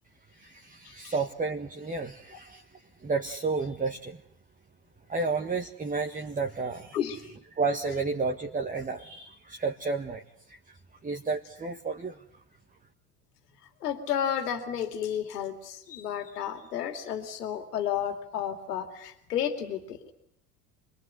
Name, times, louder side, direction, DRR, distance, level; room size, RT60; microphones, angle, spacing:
voice 1, 0.3-4.2 5.1-7.0 7.5-10.8 11.0-12.4, right 4 dB, 15° right, 3 dB, 1.6 m, -32 dB
voice 2, 13.8-20.1, left 9 dB, 80° left, 7 dB, 2.7 m, -32 dB
26.0 x 21.5 x 9.6 m, 0.72 s
hypercardioid pair, 75°, 47 cm